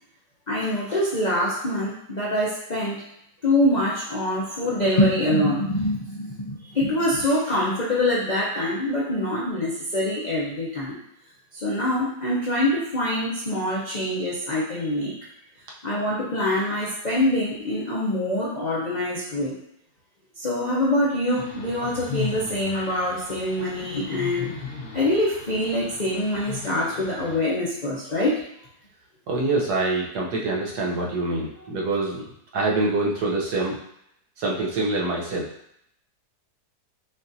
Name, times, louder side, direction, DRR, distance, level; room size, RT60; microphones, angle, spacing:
voice 1, 0.5-3.0 3.4-11.0 11.6-15.1 15.8-19.5 20.4-24.5 24.9-28.4, left 1 dB, 55° left, -7 dB, 0.5 m, -24 dB
sound 1, 21.3-27.4, left 5 dB, 85° left, 2.0 m, -37 dB
voice 2, 29.3-32.3 32.5-33.8 34.4-35.5, right 2 dB, 70° right, -2 dB, 1.3 m, -25 dB
5.8 x 2.5 x 2.6 m, 0.74 s
omnidirectional pair, 1.9 m